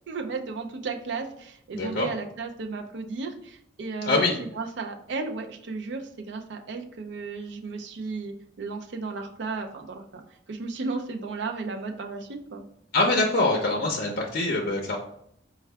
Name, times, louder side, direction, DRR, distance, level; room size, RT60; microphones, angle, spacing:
voice 1, 0.1-4.3 4.5-10.2 10.5-12.6, right 4 dB, 65° right, 3 dB, 0.5 m, -34 dB
voice 2, 1.7-2.1 4.0-4.3 12.9-15.0, left 2 dB, 50° left, 0 dB, 0.6 m, -24 dB
4.4 x 2.3 x 3.3 m, 0.70 s
head